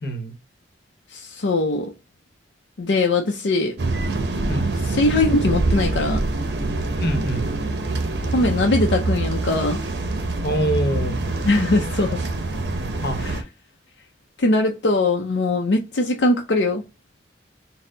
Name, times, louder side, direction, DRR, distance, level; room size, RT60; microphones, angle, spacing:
voice 1, 0.0-0.4 4.5-4.7 7.0-7.5 10.4-11.2 13.0-13.3, equal, 60° left, 0.9 m, -25 dB
voice 2, 1.1-1.9 2.8-3.8 4.8-6.2 8.3-9.8 11.5-12.2 13.2-13.4 14.4-16.8, left 2 dB, 80° left, 0.5 m, -21 dB
sound 1, 3.8-13.4, right 2 dB, 65° right, 0.7 m, -25 dB
4.2 x 2.1 x 3.8 m
head